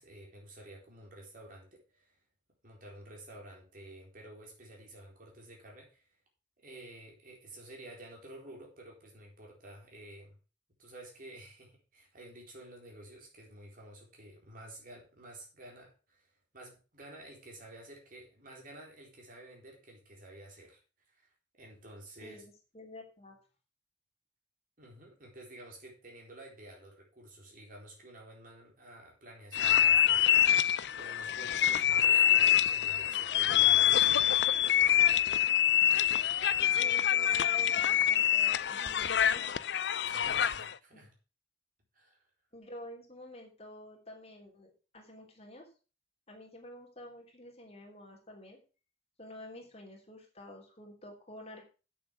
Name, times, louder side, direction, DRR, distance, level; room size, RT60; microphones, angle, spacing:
voice 1, 0.0-2.2 2.6-6.1 6.6-10.4 10.8-20.8 21.1-21.3 21.6-22.4 24.8-34.4 40.1-41.1 41.9-42.2, right 1 dB, 55° right, -1 dB, 4.2 m, -51 dB
voice 2, 22.2-23.4 36.5-39.6 40.9-41.0 42.5-45.7 46.3-48.6 49.2-51.6, left 1 dB, 35° left, 0 dB, 3.2 m, -49 dB
sound 1, 29.5-40.7, left 11 dB, 75° left, 0.5 m, -26 dB
8.5 x 7.1 x 6.0 m, 0.34 s
head